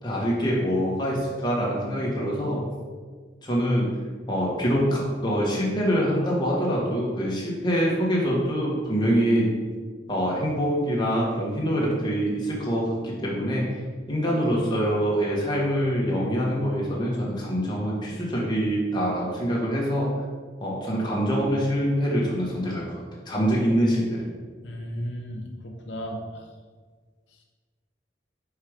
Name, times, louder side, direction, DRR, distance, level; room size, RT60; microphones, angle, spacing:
voice 1, 0.0-2.6 3.4-3.9 4.3-9.5 10.1-13.6 14.1-20.1 20.6-24.2, equal, 25° left, -4 dB, 1.7 m, -25 dB
voice 2, 24.6-26.4, equal, 85° left, 1 dB, 0.7 m, -35 dB
5.7 x 4.8 x 5.0 m, 1.5 s
head